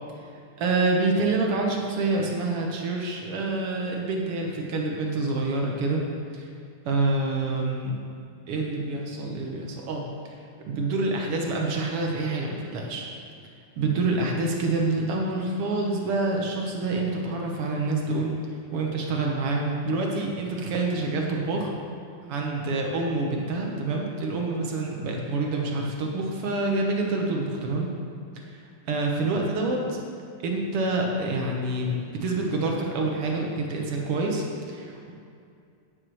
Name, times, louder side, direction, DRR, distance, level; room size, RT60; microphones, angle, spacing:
voice 1, 0.6-6.0 6.3-6.5 6.8-8.0 8.5-13.1 13.8-18.4 18.7-21.7 22.2-27.9 28.5-30.0 30.4-35.1, right 2 dB, 65° right, 0 dB, 1.5 m, -27 dB
9.9 x 6.4 x 6.2 m, 2.5 s
omnidirectional pair, 3.7 m